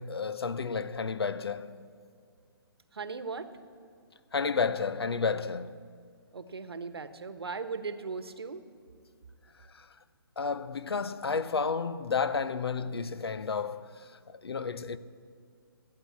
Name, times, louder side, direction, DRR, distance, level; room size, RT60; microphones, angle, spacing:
voice 1, 0.0-1.8 4.3-5.8 9.8-9.9 10.4-13.9 14.3-15.0, left 5 dB, 85° left, 0.8 m, -31 dB
voice 2, 2.9-3.5 6.3-8.6, right 4 dB, 85° right, 1.2 m, -38 dB
16.0 x 9.7 x 8.5 m
hypercardioid pair, 150°, 13 cm